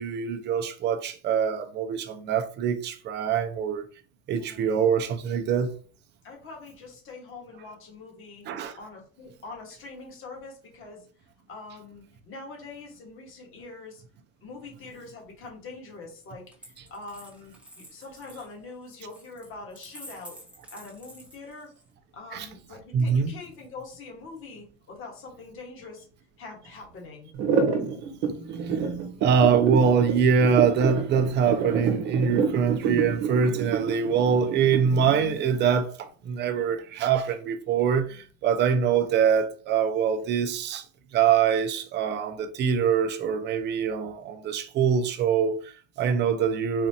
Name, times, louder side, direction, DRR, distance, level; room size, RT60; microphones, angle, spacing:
voice 1, 0.0-3.8 4.3-5.7 8.5-8.7 22.3-22.5 22.9-23.3 28.4-40.8 41.1-46.9, right 7 dB, 30° right, 0.5 m, -24 dB
voice 2, 4.4-4.8 6.2-8.5 8.8-11.1 11.5-14.0 14.4-20.4 20.7-21.7 22.1-26.1 26.4-27.3 38.1-38.2, left 3 dB, 35° left, 1.6 m, -44 dB
Coin (dropping), 16.5-21.9 23.0-23.7, equal, 5° right, 0.9 m, -49 dB
sound 1, 27.3-35.2, right 6 dB, 60° right, 1.0 m, -27 dB
4.2 x 2.5 x 2.8 m
supercardioid pair, 125°, 35 cm